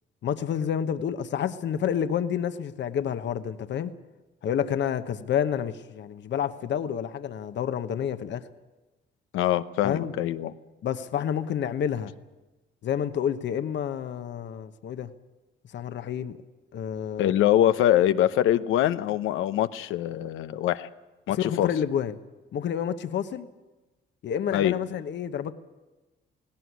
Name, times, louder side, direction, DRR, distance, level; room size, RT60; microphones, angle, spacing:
voice 1, 0.2-3.9 4.4-8.4 9.8-10.2 10.8-12.1 12.8-15.1 15.7-16.4 16.7-17.3 21.3-22.2 22.5-23.5 24.2-25.5, left 8 dB, 65° left, 10 dB, 1.1 m, -29 dB
voice 2, 9.3-10.5 17.2-20.9 21.3-21.7 24.5-24.7, left 12 dB, 90° left, 12 dB, 0.9 m, -23 dB
17.5 x 17.5 x 9.5 m, 1.1 s
cardioid pair, 90°, 20 cm